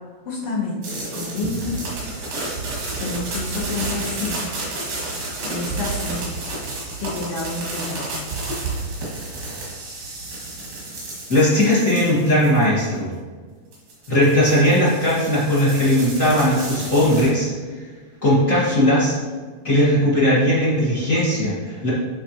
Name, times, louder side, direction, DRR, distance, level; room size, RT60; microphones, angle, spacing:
voice 1, 0.2-1.7 3.0-4.6 5.4-6.4 7.0-8.5, left 3 dB, 85° left, -5 dB, 1.2 m, -29 dB
sound 1, 0.8-12.8 13.7-17.3, right 2 dB, 85° right, 3.7 m, -31 dB
voice 2, 11.3-13.1 14.1-17.5 18.2-19.2 19.6-21.9, left 1 dB, 70° left, -8 dB, 0.7 m, -18 dB
11.0 x 3.7 x 2.9 m, 1.5 s
omnidirectional pair, 4.0 m